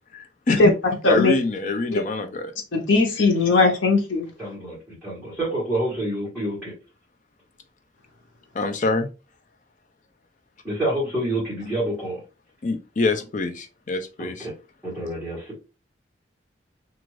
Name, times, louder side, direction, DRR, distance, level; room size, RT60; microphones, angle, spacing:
voice 1, 0.1-0.7 1.0-2.5 8.5-9.1 12.6-14.5, left 3 dB, 40° left, 0.4 m, -25 dB
voice 2, 2.7-4.3, left 3 dB, 80° left, 0.9 m, -18 dB
voice 3, 4.4-6.7 10.6-12.2 14.2-14.5 14.8-15.7, right 1 dB, 5° right, 1.2 m, -28 dB
2.5 x 2.5 x 3.1 m
head